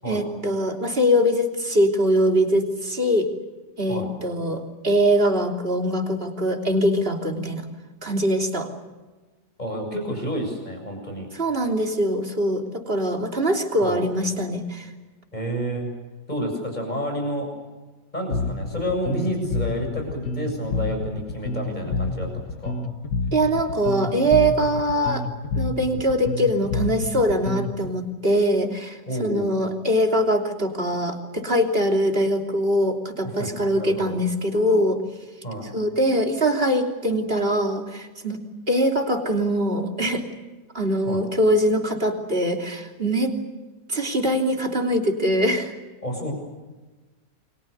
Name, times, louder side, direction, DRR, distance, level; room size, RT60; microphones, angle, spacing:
voice 1, 0.1-3.3 3.8-7.6 8.0-8.7 11.4-14.9 23.3-25.2 25.5-35.0 35.7-38.4 38.7-40.2 40.7-43.4 43.9-45.7, equal, 30° right, 3 dB, 3.3 m, -22 dB
voice 2, 9.6-11.3 13.8-14.0 15.3-15.9 16.3-17.5 18.1-22.7 29.1-29.5 33.2-34.2 35.4-35.7 41.1-41.2 46.0-46.3, equal, 25° left, 3 dB, 7.4 m, -30 dB
Bass guitar, 18.3-27.9, left 3 dB, 70° left, 2.0 m, -29 dB
29.0 x 24.0 x 6.7 m, 1.2 s
omnidirectional pair, 1.9 m